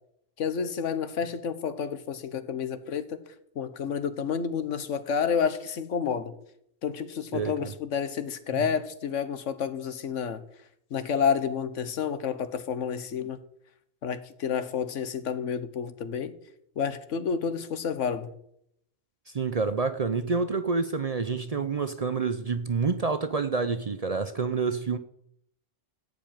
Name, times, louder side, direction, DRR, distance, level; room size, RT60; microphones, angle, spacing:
voice 1, 0.4-3.2 3.5-6.3 6.8-10.4 10.9-13.4 14.0-16.3 16.8-18.3, left 7 dB, 85° left, 1.3 m, -30 dB
voice 2, 19.3-25.0, right 4 dB, 40° right, 0.6 m, -28 dB
15.0 x 5.2 x 9.0 m
omnidirectional pair, 1.2 m